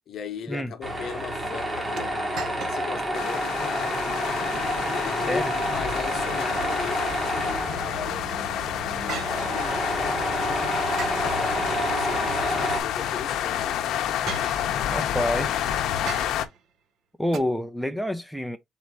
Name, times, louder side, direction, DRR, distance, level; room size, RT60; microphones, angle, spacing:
voice 1, 0.1-4.0 4.8-8.3 8.8-9.8 11.2-14.0, left 7 dB, 50° left, 0.9 m, -38 dB
Tools, 0.8-12.8, right 1 dB, 15° right, 1.1 m, -29 dB
sound 1, 2.0-3.1 3.5-3.6 4.2-4.6 6.5-7.4 9.1-10.1 11.0-12.1 13.3-13.4 14.3-15.1 16.1-16.7 17.3-17.4, right 6 dB, 65° right, 0.8 m, -39 dB
sound 2, 3.1-16.5, left 10 dB, 75° left, 0.6 m, -29 dB
voice 2, 14.9-15.7 17.2-18.6, equal, ahead, 0.4 m, -28 dB
4.2 x 2.7 x 4.6 m
cardioid pair, 170°, 0 cm